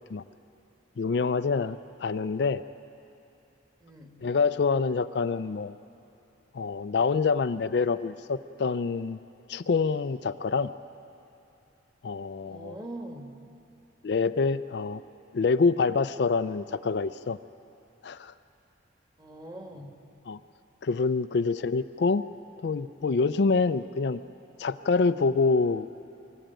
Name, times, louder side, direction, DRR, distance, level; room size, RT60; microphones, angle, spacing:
voice 1, 1.0-2.6 4.2-5.7 6.5-9.2 9.5-10.7 12.0-12.8 14.0-15.0 15.3-17.4 18.0-18.3 20.3-20.4 20.8-22.2 22.6-24.2 24.6-25.9, left 4 dB, 55° left, 12 dB, 0.4 m, -26 dB
voice 2, 3.8-4.2 12.5-13.3 19.2-19.9, right 1 dB, 20° right, 3 dB, 1.5 m, -42 dB
24.5 x 13.5 x 9.0 m, 2.9 s
head